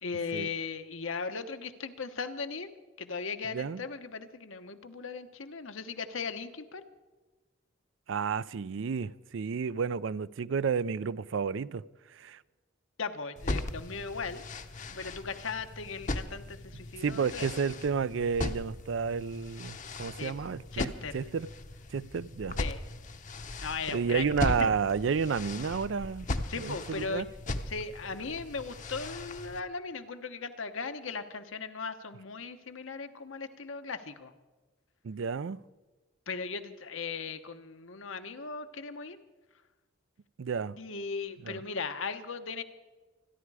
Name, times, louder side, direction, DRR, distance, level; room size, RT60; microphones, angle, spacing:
voice 1, 0.0-2.7 3.0-6.8 13.0-14.4 14.9-17.6 20.2-21.2 22.6-22.8 23.6-24.2 24.6-24.7 26.5-27.3 27.7-34.3 36.3-39.2 40.8-42.6, left 5 dB, 75° left, 1.1 m, -38 dB
voice 2, 3.5-3.8 8.1-11.8 12.1-12.4 17.0-21.5 21.9-22.6 23.9-26.3 26.6-27.3 35.0-35.6 40.4-40.8 41.4-41.6, right 6 dB, 65° right, 0.4 m, -31 dB
sound 1, 13.4-29.6, left 2 dB, 40° left, 0.8 m, -38 dB
26.0 x 11.0 x 4.8 m
head